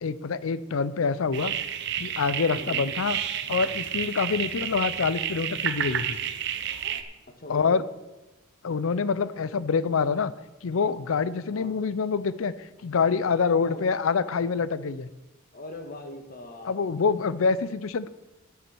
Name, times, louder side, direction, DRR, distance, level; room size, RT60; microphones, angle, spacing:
voice 1, 0.0-1.5 2.0-3.2 3.5-6.2 7.5-7.8 8.6-10.3 10.6-15.1 16.7-18.1, left 5 dB, 75° left, 16 dB, 0.5 m, -26 dB
sound 1, 1.3-7.0, right 9 dB, 55° right, 0.7 m, -30 dB
voice 2, 2.5-2.9 7.4-7.9 11.5-11.7 13.5-13.9 15.5-16.9, left 1 dB, 45° left, 5 dB, 1.4 m, -41 dB
8.9 x 8.3 x 6.2 m, 1.1 s
head